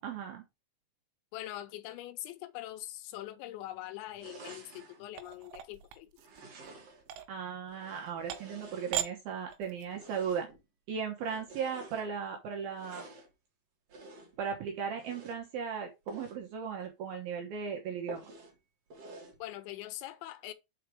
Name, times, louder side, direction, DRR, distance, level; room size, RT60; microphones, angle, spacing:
voice 1, 0.0-0.4 7.3-10.5 10.9-13.1 14.4-18.2, right 7 dB, 70° right, 2.4 m, -37 dB
voice 2, 1.3-6.1 19.4-20.5, left 14 dB, 80° left, 2.9 m, -43 dB
sound 1, 4.2-5.0 6.2-7.1 7.7-9.3 9.9-10.6 11.2-12.1 12.7-13.3 13.9-14.4 14.9-15.4 16.0-16.4 16.8-16.9 17.3-17.4 18.1-18.6 18.9-19.4, right 2 dB, 50° right, 2.0 m, -50 dB
sound 2, 5.1-6.4 7.0-7.3 7.9-8.0 8.3-8.6 8.9-9.1 9.5-10.0, right 11 dB, 90° right, 3.3 m, -37 dB
6.0 x 5.0 x 4.6 m
omnidirectional pair, 5.4 m